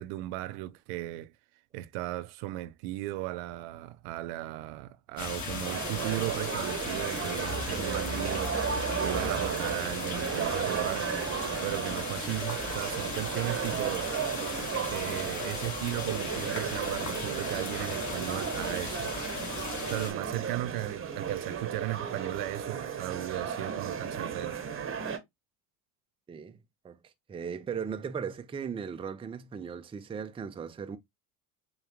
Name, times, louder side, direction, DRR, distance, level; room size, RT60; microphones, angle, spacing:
voice 1, 0.0-1.3 1.7-11.1 11.6-14.1 14.9-19.1 19.9-24.6, right 17 dB, 65° right, 0.5 m, -36 dB
rain medium drain MS, 5.2-20.1, left 4 dB, 40° left, 1.8 m, -37 dB
sound 1, 5.6-25.2, right 7 dB, 30° right, 0.9 m, -34 dB
sound 2, 7.5-10.4, left 1 dB, 10° left, 0.9 m, -41 dB
voice 2, 26.3-26.6 26.8-27.0 27.3-31.0, right 6 dB, 15° right, 0.4 m, -37 dB
5.0 x 2.3 x 2.9 m
hypercardioid pair, 80°, 44 cm